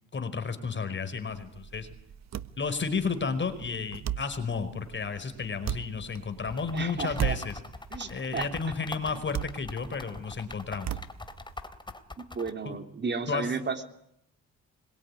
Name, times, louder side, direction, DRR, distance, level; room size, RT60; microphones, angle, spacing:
voice 1, 0.1-1.9 2.5-7.5 8.1-10.9 12.6-12.8 13.3-13.5, left 5 dB, 40° left, 10 dB, 5.0 m, -32 dB
sound 1, 1.2-11.7, right 10 dB, 60° right, 1.5 m, -38 dB
sound 2, 6.5-12.5, left 2 dB, 15° left, 3.3 m, -42 dB
voice 2, 6.7-7.4 7.9-8.5 12.2-13.8, right 4 dB, 35° right, 7 dB, 3.4 m, -33 dB
26.0 x 23.0 x 9.9 m, 0.73 s
cardioid pair, 90°, 30 cm